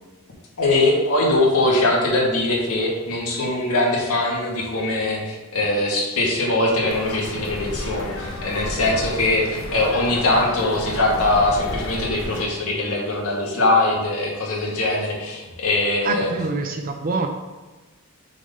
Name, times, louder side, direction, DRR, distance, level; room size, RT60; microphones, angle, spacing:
voice 1, 0.6-16.3, left 2 dB, 80° left, -3 dB, 2.0 m, -21 dB
sound 1, 6.8-12.5, left 1 dB, 60° left, 1.1 m, -32 dB
voice 2, 16.0-17.3, right 4 dB, 40° right, 4 dB, 0.5 m, -25 dB
6.1 x 4.1 x 5.4 m, 1.2 s
head